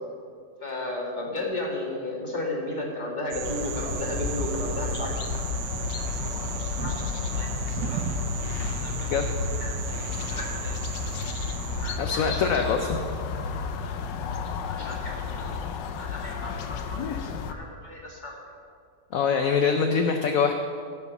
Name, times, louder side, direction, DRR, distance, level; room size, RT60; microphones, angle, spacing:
voice 1, 0.6-5.1 5.5-5.6 5.9-6.9 7.4-8.0 8.7-9.1 9.6-10.8 11.8-13.0 14.6-15.6 16.0-18.4, left 2 dB, 25° left, -2 dB, 2.0 m, -35 dB
sound 1, 3.3-12.0, right 9 dB, 70° right, 1.0 m, -36 dB
sound 2, 3.4-17.5, left 5 dB, 80° left, 1.4 m, -32 dB
voice 2, 12.0-13.0 19.1-20.5, left 6 dB, 65° left, 5 dB, 0.9 m, -24 dB
17.5 x 5.9 x 5.3 m, 2.2 s
omnidirectional pair, 1.9 m